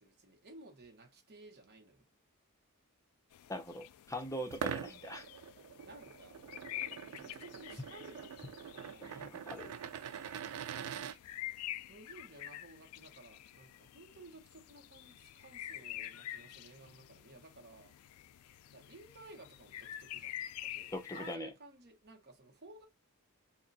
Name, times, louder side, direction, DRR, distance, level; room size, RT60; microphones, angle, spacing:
voice 1, 0.0-2.1 5.8-6.5 7.0-9.4 11.9-18.0 18.7-22.9, right 2 dB, 45° right, 1.1 m, -55 dB
sound 1, 3.3-21.4, left 12 dB, 75° left, 0.3 m, -48 dB
voice 2, 3.5-5.3 9.0-9.7 20.9-21.5, equal, 15° left, 0.7 m, -42 dB
sound 2, 4.5-11.2, right 8 dB, 90° right, 0.4 m, -44 dB
2.8 x 2.5 x 3.9 m
head